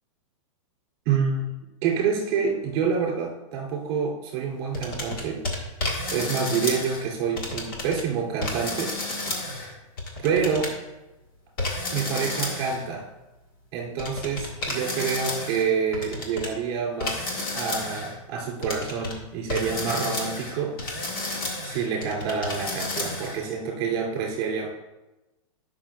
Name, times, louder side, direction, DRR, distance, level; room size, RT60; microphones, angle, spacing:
voice 1, 1.0-1.5 1.8-5.4 6.1-8.9 9.6-9.7 10.2-10.7 11.9-13.1 13.7-20.8 21.6-24.7, right 6 dB, 35° right, -3 dB, 3.0 m, -27 dB
sound 1, 4.7-7.1 7.4-8.0 8.4-10.7 11.6-12.8 14.0-16.5 17.0-18.1 18.6-19.2 19.5-23.4, left 2 dB, 40° left, 1.8 m, -31 dB
18.0 x 6.1 x 2.4 m, 1.0 s
supercardioid pair, 170°, 18 cm